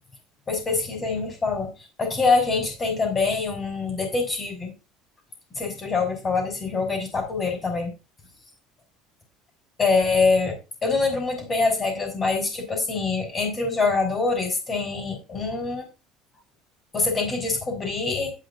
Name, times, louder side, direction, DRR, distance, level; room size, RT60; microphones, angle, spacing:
voice 1, 0.5-1.7 2.0-4.7 5.5-7.9 9.8-10.5 10.8-15.8 16.9-18.3, left 4 dB, 25° left, 5 dB, 6.2 m, -24 dB
10.5 x 7.5 x 4.9 m, 0.29 s
cardioid pair, 130°, 0 cm